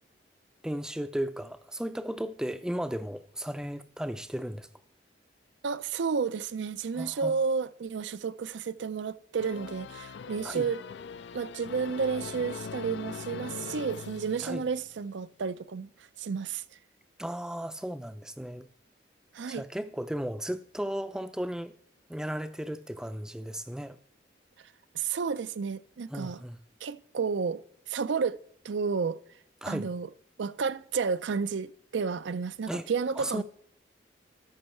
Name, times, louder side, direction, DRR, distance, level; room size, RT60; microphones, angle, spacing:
voice 1, 0.6-4.7 6.9-7.3 10.4-10.7 14.4-14.6 17.2-18.7 19.5-21.7 22.1-24.0 26.1-26.6 29.6-29.9 32.7-32.9 33.2-33.4, equal, 5° right, 0.4 m, -35 dB
voice 2, 5.6-10.8 11.3-15.9 16.2-16.6 19.3-19.6 24.9-26.4 26.8-27.6 27.9-28.4 28.6-29.2 29.7-30.1 30.4-33.4, right 5 dB, 80° right, 0.4 m, -31 dB
sound 1, 9.4-15.0, left 6 dB, 70° left, 0.4 m, -42 dB
13.0 x 5.6 x 4.4 m
head